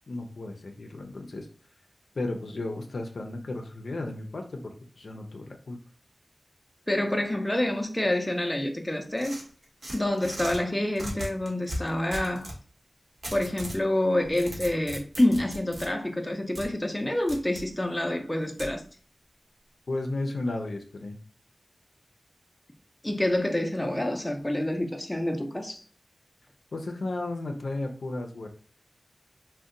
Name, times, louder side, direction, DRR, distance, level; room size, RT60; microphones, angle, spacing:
voice 1, 0.1-1.5 2.1-5.8 19.9-21.2 26.7-28.5, left 2 dB, 75° left, 0.5 m, -34 dB
voice 2, 6.9-9.4 9.9-12.5 13.3-18.8 23.0-25.8, left 1 dB, 15° left, 0.5 m, -27 dB
sound 1, 9.2-10.6 11.0-12.6 13.2-13.8 14.2-15.9 16.6-16.7 17.3-17.7 18.6-18.7, equal, 60° right, 0.9 m, -37 dB
2.6 x 2.1 x 3.7 m
wide cardioid pair, 85°, 0 cm